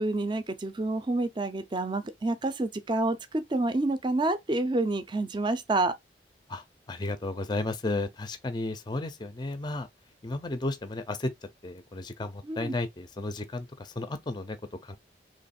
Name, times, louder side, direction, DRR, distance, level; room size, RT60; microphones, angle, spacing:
voice 1, 0.0-5.9 12.4-12.7, right 2 dB, 25° right, 0.5 m, -28 dB
voice 2, 6.5-9.9 10.2-11.3 11.6-14.6 14.8-15.0, left 2 dB, 25° left, 0.5 m, -33 dB
3.1 x 3.1 x 4.2 m
head